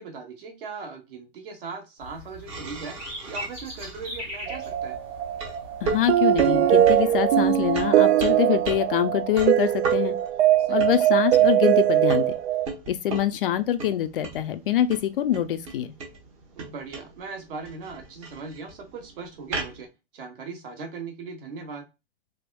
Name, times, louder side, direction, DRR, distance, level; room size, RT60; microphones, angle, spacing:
voice 1, 0.0-3.0 3.3-5.0 10.6-11.0 16.6-19.9 20.1-21.9, right 4 dB, 50° right, 1.3 m, -39 dB
sound 1, 2.0-7.9, left 1 dB, 10° right, 0.4 m, -41 dB
sound 2, 2.5-19.9, right 3 dB, 30° right, 1.0 m, -38 dB
sound 3, 4.5-12.7, right 12 dB, 70° right, 0.5 m, -21 dB
voice 2, 5.8-10.2 10.7-12.4 12.9-16.0, left 11 dB, 50° left, 0.4 m, -25 dB
3.4 x 3.4 x 2.2 m
supercardioid pair, 170°, 34 cm